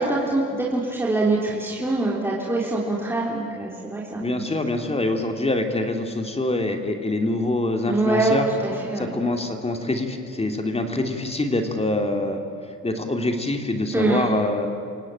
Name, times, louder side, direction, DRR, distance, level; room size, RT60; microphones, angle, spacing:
voice 1, 0.0-4.2 7.9-9.1 13.9-14.3, right 2 dB, 10° right, -4 dB, 3.9 m, -24 dB
voice 2, 4.2-8.5 8.9-12.4 12.8-14.7, left 2 dB, 20° left, 5 dB, 2.7 m, -25 dB
29.0 x 17.5 x 8.7 m, 2.3 s
cardioid pair, 90°, 30 cm